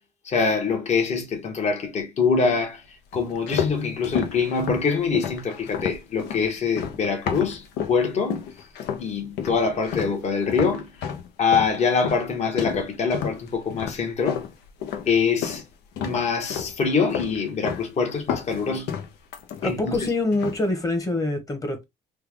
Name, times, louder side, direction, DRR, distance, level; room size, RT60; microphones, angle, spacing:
voice 1, 0.2-2.8 3.1-8.5 9.0-10.9 11.4-14.4 15.0-15.6 16.0-18.9 19.6-20.0, left 5 dB, 40° left, 1.2 m, -24 dB
sound 1, 3.1-8.0 8.3-9.1 9.4-15.6 15.9-16.8 17.1-17.9 18.1-20.0 20.3-20.7, left 8 dB, 80° left, 0.7 m, -31 dB
voice 2, 19.6-21.8, left 2 dB, 20° left, 1.1 m, -25 dB
3.3 x 2.3 x 3.4 m
cardioid pair, 110°, 17 cm